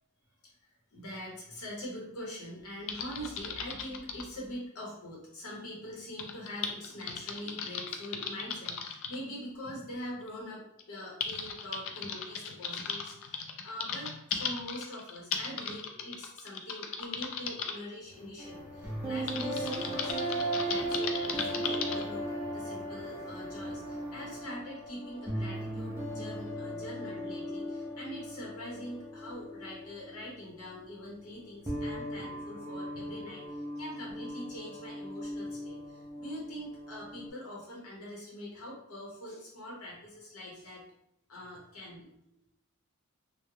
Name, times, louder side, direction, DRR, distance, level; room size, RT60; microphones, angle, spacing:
voice 1, 0.9-20.1 20.6-40.8 41.3-42.5, equal, 75° left, -4 dB, 0.8 m, -43 dB
Typing, 2.9-4.3 6.2-9.2 10.2-10.3 10.8-17.7 19.3-22.0, left 6 dB, 60° left, 0.3 m, -37 dB
sound 1, 17.4-24.6 25.5-26.6, equal, 40° right, 0.9 m, -52 dB
sound 2, 18.4-31.0 31.3-37.3, right 1 dB, 10° right, 0.4 m, -37 dB
2.3 x 2.0 x 3.0 m, 0.73 s
head